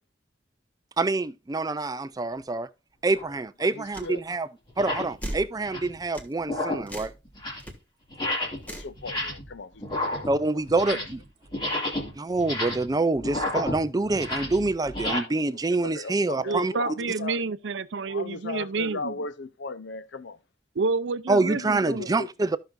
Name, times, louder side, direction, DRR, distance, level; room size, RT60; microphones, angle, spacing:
voice 1, 1.0-2.7 3.0-4.5 4.8-7.1 10.3-11.2 12.2-16.7 21.3-22.6, right 3 dB, 20° right, 0.4 m, -26 dB
sound 1, 3.1-3.3 4.0-4.1 4.7-5.1 5.5-6.0 6.4-6.9 7.3-7.7 8.1-8.7 8.9-9.5 9.8-11.2 11.5-15.2, left 1 dB, 25° left, 2.1 m, -31 dB
voice 2, 3.6-4.2 8.7-10.6 10.9-11.1 11.5-11.9 15.5-17.4 18.0-20.4 21.4-22.3, left 3 dB, 70° left, 0.6 m, -38 dB
sound 2, 3.9-4.1 5.2-5.5 6.1-6.3 6.9-7.2 7.6-7.7 8.6-8.9, right 1 dB, 10° left, 1.3 m, -36 dB
voice 3, 16.4-19.2 20.8-22.2, right 4 dB, 70° right, 0.5 m, -29 dB
13.5 x 5.9 x 2.5 m
head